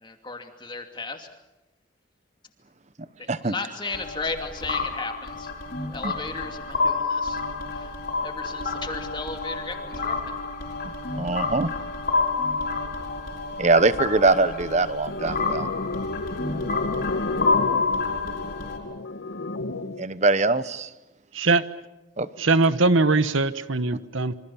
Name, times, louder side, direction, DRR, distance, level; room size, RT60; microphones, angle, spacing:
voice 1, 0.0-1.3 3.2-5.5 5.9-7.4 7.7-7.9 8.2-10.2, left 3 dB, 25° left, 4 dB, 2.5 m, -35 dB
sound 1, 3.9-18.8, left 4 dB, 45° left, 5.1 m, -29 dB
voice 2, 11.1-11.7 13.6-15.7 20.0-20.9 22.2-22.3, right 3 dB, 35° right, 14 dB, 0.9 m, -22 dB
sound 2, 15.1-20.1, left 2 dB, 75° left, 1.3 m, -31 dB
voice 3, 22.4-24.3, right 3 dB, 75° right, 13 dB, 1.2 m, -21 dB
27.0 x 25.5 x 7.1 m, 0.98 s
head